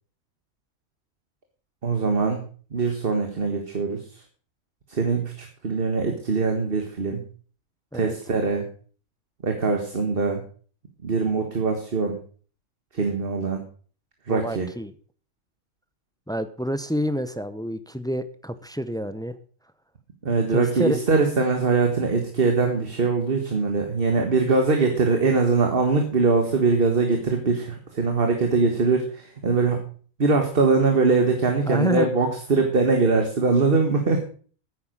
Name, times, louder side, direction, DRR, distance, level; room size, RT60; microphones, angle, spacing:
voice 1, 1.8-2.4 2.7-4.2 4.9-7.2 7.9-8.6 9.4-10.4 11.0-12.2 12.9-13.6 14.3-14.7 20.2-29.8 30.2-34.2, right 4 dB, 40° right, 4 dB, 1.7 m, -22 dB
voice 2, 14.3-14.9 16.3-19.3 20.5-21.0 31.7-32.1, equal, 5° left, 11 dB, 0.5 m, -28 dB
9.8 x 9.5 x 6.3 m, 0.43 s
omnidirectional pair, 1.5 m